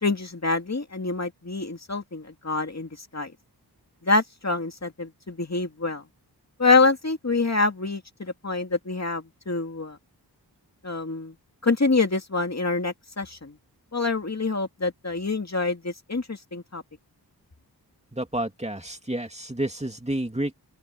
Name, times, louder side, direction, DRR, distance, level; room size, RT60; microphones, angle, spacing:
voice 1, 0.0-3.3 4.0-6.0 6.6-10.0 10.8-11.3 11.6-13.5 13.9-16.8, left 3 dB, 40° left, 2.5 m, -26 dB
voice 2, 18.2-20.5, right 1 dB, 15° right, 2.7 m, -30 dB
open air
wide cardioid pair, 80°, 40 cm